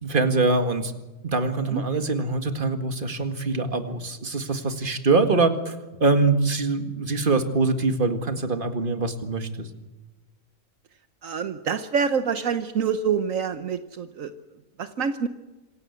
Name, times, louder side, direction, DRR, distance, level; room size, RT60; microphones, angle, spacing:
voice 1, 0.0-0.9 1.2-5.8 6.0-9.7, right 3 dB, 40° right, 7 dB, 2.1 m, -23 dB
voice 2, 11.2-14.3 14.8-15.3, right 6 dB, 70° right, 9 dB, 1.3 m, -26 dB
26.5 x 16.5 x 8.2 m, 1.2 s
omnidirectional pair, 1.4 m